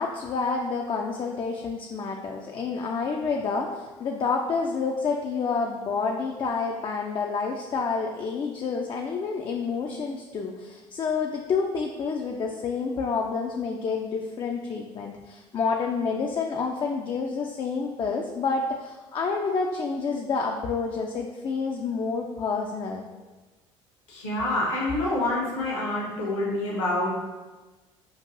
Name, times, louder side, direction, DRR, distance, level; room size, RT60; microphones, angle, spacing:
voice 1, 0.0-23.1, left 4 dB, 30° left, 1 dB, 0.4 m, -29 dB
voice 2, 24.1-27.2, left 1 dB, 70° left, -4 dB, 0.9 m, -27 dB
5.3 x 2.5 x 2.6 m, 1.2 s
figure-of-eight pair, 55°, 16 cm